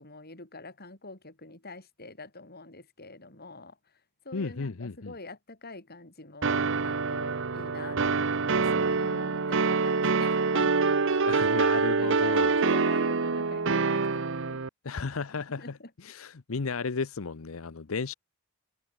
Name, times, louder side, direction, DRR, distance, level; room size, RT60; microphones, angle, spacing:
voice 1, 0.0-3.8 4.2-10.8 12.0-14.6 15.6-15.9, left 3 dB, 50° left, 7.3 m, -46 dB
voice 2, 4.3-5.1 11.3-12.6 14.8-18.1, left 4 dB, 85° left, 0.8 m, -34 dB
sound 1, 6.4-14.7, right 4 dB, 65° right, 1.0 m, -26 dB
head